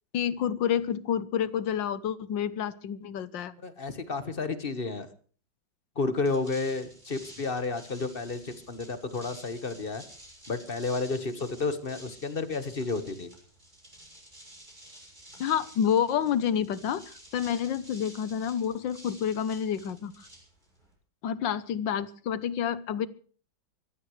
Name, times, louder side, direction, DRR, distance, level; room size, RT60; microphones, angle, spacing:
voice 1, 0.1-3.5 15.4-20.3 21.2-23.1, left 8 dB, 70° left, 17 dB, 1.5 m, -29 dB
voice 2, 3.6-5.1 5.9-10.0 10.5-13.3, left 3 dB, 30° left, 11 dB, 1.5 m, -31 dB
sound 1, 6.1-20.9, right 1 dB, 20° right, 6.5 m, -51 dB
23.5 x 16.0 x 3.3 m, 0.44 s
omnidirectional pair, 2.1 m